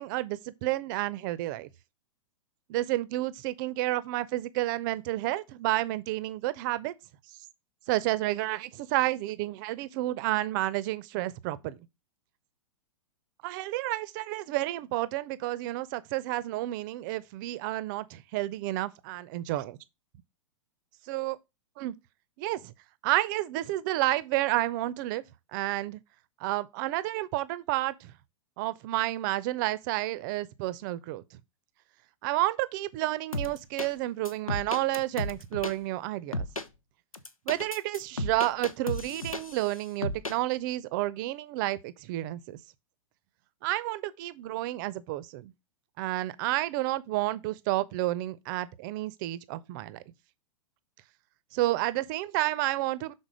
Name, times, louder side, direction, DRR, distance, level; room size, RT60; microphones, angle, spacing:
voice 1, 0.0-1.7 2.7-6.9 7.9-11.8 13.4-19.8 21.1-21.4 21.8-21.9 22.4-22.7 23.0-25.2 25.5-26.0 26.4-28.1 28.6-31.2 32.2-36.5 37.5-42.6 43.6-45.5 46.0-50.0 51.5-53.1, right 16 dB, 40° right, 0.6 m, -30 dB
sound 1, 33.3-33.9 34.3-35.7 36.3-36.7 37.1-39.7 40.0-40.4, left 1 dB, 90° left, 0.7 m, -33 dB
6.1 x 4.0 x 5.0 m
figure-of-eight pair, 105°, 17 cm